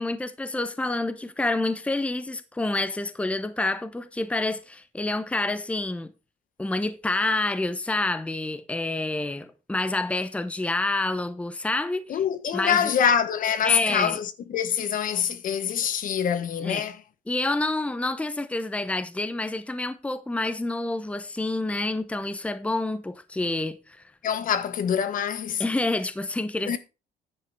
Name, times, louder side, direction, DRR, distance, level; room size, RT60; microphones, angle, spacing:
voice 1, 0.0-6.1 6.6-12.2 12.5-12.9 13.6-14.2 16.6-16.8 17.3-24.0 25.6-26.8, left 2 dB, 5° left, 0.9 m, -28 dB
voice 2, 12.1-17.0 24.2-25.6 26.7-26.8, left 8 dB, 55° left, 1.3 m, -25 dB
10.5 x 5.7 x 5.5 m
cardioid pair, 110°, 17 cm